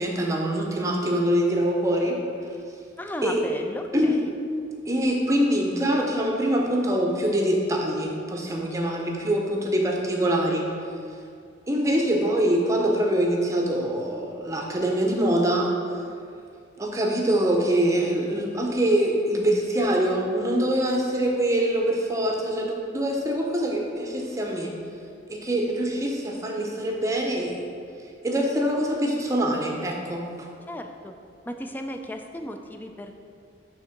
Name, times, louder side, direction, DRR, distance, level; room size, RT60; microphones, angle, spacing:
voice 1, 0.0-2.2 3.2-3.4 3.9-4.2 4.9-10.7 11.7-15.7 16.8-24.7 25.3-27.7 28.2-30.3, right 1 dB, 15° right, 0 dB, 0.7 m, -24 dB
voice 2, 3.0-4.3 30.7-31.1 31.5-33.1, left 1 dB, 10° left, 5 dB, 0.3 m, -35 dB
6.5 x 3.5 x 5.8 m, 2.3 s
head